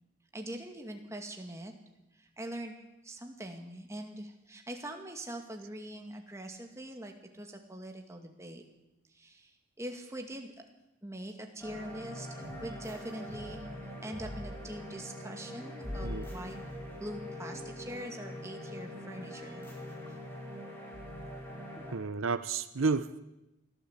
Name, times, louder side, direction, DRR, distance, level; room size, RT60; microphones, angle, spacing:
voice 1, 0.3-1.7 2.1-2.7 3.0-8.6 9.1-10.5 11.0-13.7 14.0-16.6 17.0-19.7 20.1-20.2, right 1 dB, 15° right, 3 dB, 2.2 m, -43 dB
sound 1, 11.6-21.9, left 1 dB, 10° left, 4.5 m, -42 dB
voice 2, 21.9-23.2, right 4 dB, 75° right, 13 dB, 0.8 m, -31 dB
24.0 x 14.0 x 8.2 m, 0.95 s
head